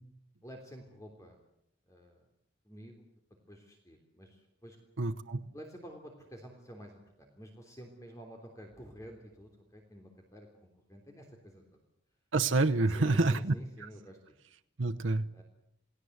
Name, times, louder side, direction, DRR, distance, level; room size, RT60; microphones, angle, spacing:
voice 1, 0.4-1.4 1.9-2.2 2.7-3.1 3.5-4.8 5.5-11.8 12.9-14.4 15.3-15.4, equal, 15° left, 2 dB, 3.3 m, -50 dB
voice 2, 5.0-5.4 12.3-13.5 14.8-15.2, right 3 dB, 85° right, 6 dB, 0.9 m, -27 dB
28.5 x 19.5 x 8.0 m, 0.76 s
head